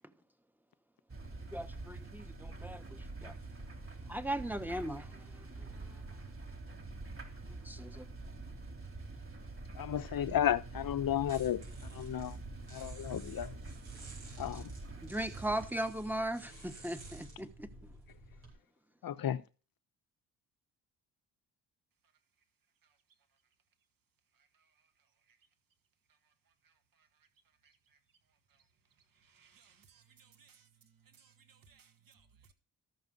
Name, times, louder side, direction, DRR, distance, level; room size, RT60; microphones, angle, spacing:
sound 1, 1.1-15.7, right 3 dB, 30° right, 3.4 m, -46 dB
voice 1, 1.5-3.3 4.1-6.0 7.4-8.1 15.0-17.9, right 1 dB, 5° right, 1.3 m, -39 dB
voice 2, 9.8-11.6 11.9-12.3 12.7-13.5 14.4-14.7 19.0-19.4, left 10 dB, 50° left, 1.0 m, -33 dB
sound 2, 9.9-18.5, right 1 dB, 80° right, 5.2 m, -53 dB
voice 3, 29.2-30.7 31.1-32.5, right 6 dB, 50° right, 1.7 m, -64 dB
13.5 x 6.0 x 5.4 m
hypercardioid pair, 50°, 44 cm